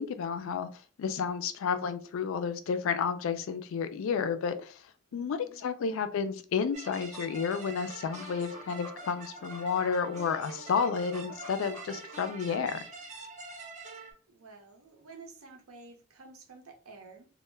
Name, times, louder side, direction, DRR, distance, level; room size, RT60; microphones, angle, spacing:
voice 1, 0.0-4.8 5.1-12.8, left 6 dB, 65° left, 0.3 m, -31 dB
voice 2, 5.1-5.6 14.3-17.3, right 3 dB, 80° right, 0.6 m, -51 dB
sound 1, 6.7-12.2, left 1 dB, 15° left, 0.6 m, -51 dB
sound 2, 6.7-14.1, right 3 dB, 35° right, 0.5 m, -45 dB
2.1 x 2.1 x 3.2 m
head